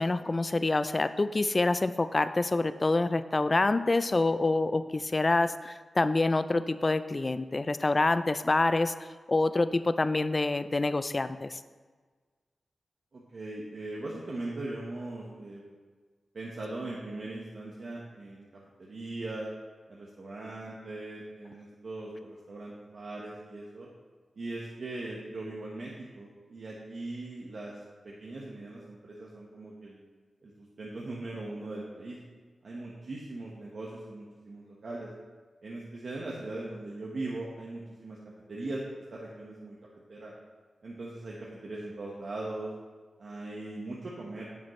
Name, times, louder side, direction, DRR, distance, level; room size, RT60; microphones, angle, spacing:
voice 1, 0.0-8.9 9.3-11.6, left 2 dB, 35° left, 12 dB, 0.4 m, -26 dB
voice 2, 13.1-15.6 16.3-18.5 18.8-19.5 19.9-23.9 24.4-27.7 28.0-30.0 30.4-32.2 32.6-35.1 35.6-38.2 38.5-38.8 39.1-39.8 40.1-40.3 40.8-42.7 43.2-44.5, right 2 dB, 65° right, -4 dB, 1.3 m, -40 dB
10.5 x 7.4 x 3.2 m, 1.4 s
cardioid pair, 60°, 0 cm